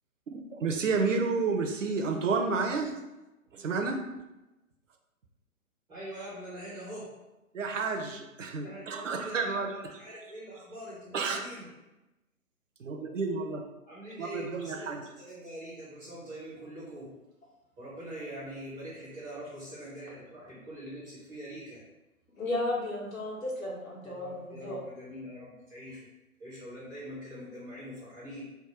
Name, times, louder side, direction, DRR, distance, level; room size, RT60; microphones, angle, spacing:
voice 1, 0.3-2.9 3.5-4.0 7.5-9.7 11.1-11.4 12.8-13.7 14.2-15.0, right 4 dB, 60° right, 4 dB, 0.7 m, -30 dB
voice 2, 5.9-7.2 8.6-11.7 13.9-17.2 17.8-21.9 24.1-26.1 26.4-28.4, equal, ahead, -16 dB, 0.5 m, -43 dB
voice 3, 22.4-24.8, left 2 dB, 65° left, -5 dB, 1.4 m, -34 dB
3.5 x 2.2 x 4.3 m, 1.0 s
figure-of-eight pair, 135°, 43 cm